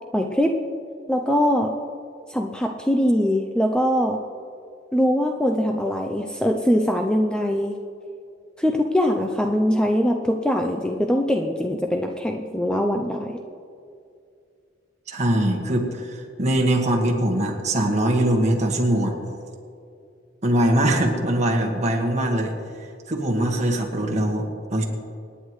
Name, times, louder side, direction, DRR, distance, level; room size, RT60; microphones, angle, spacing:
voice 1, 0.1-0.6 1.1-1.8 2.3-4.2 4.9-7.8 8.6-13.4, equal, 5° left, 3 dB, 0.5 m, -22 dB
voice 2, 15.1-19.2 20.4-22.5 23.1-24.8, right 1 dB, 40° right, 1 dB, 1.7 m, -22 dB
26.0 x 9.9 x 3.2 m, 2.4 s
head